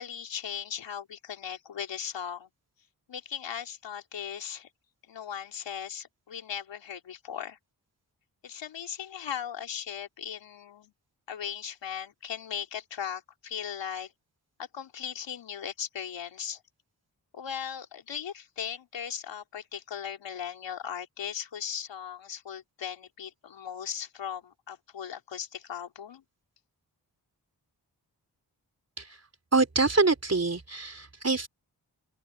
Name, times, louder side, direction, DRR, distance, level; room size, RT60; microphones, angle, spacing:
voice 1, 0.0-2.5 3.1-4.7 5.1-7.6 8.4-10.9 11.3-14.1 14.7-16.6 17.3-26.2, left 8 dB, 85° left, 3.8 m, -38 dB
voice 2, 29.5-31.5, right 3 dB, 35° right, 3.6 m, -25 dB
open air
cardioid pair, 40°, 42 cm